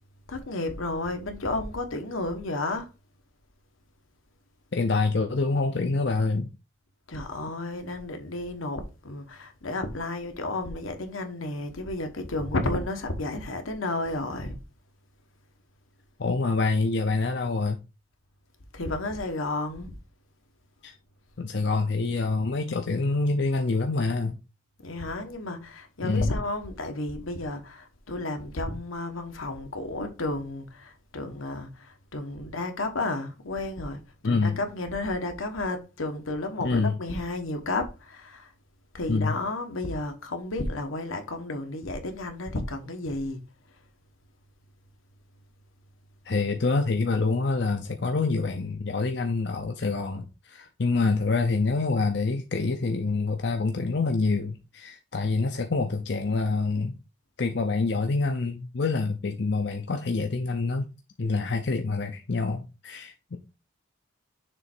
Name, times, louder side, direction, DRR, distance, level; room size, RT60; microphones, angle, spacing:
voice 1, 0.3-2.9 7.1-14.6 18.7-19.9 24.8-38.5 38.9-43.4, left 2 dB, 80° left, 1.2 m, -32 dB
voice 2, 4.7-6.5 16.2-17.8 20.8-20.9 21.4-24.4 26.0-26.3 34.2-34.6 36.6-37.0 39.1-39.4 46.3-57.0 57.4-60.9 61.2-63.4, left 3 dB, 55° left, 0.6 m, -26 dB
6.8 x 3.2 x 4.4 m
head